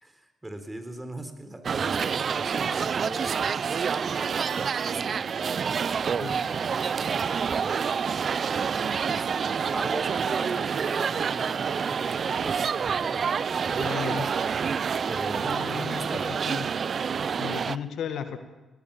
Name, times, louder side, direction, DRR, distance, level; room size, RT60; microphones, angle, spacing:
voice 1, 0.0-7.9 9.1-9.3 9.7-12.7 13.0-13.7 15.1-16.4, right 1 dB, 15° right, 8 dB, 3.8 m, -40 dB
sound 1, 1.6-17.8, right 6 dB, 55° right, 0.6 m, -28 dB
Bell, 4.5-6.5, right 7 dB, 75° right, 2.7 m, -49 dB
voice 2, 6.2-6.5 13.7-14.3 15.4-16.7 17.4-18.4, left 7 dB, 80° left, 8 dB, 1.8 m, -35 dB
20.0 x 19.0 x 7.2 m, 1.1 s
supercardioid pair, 65°, 0 cm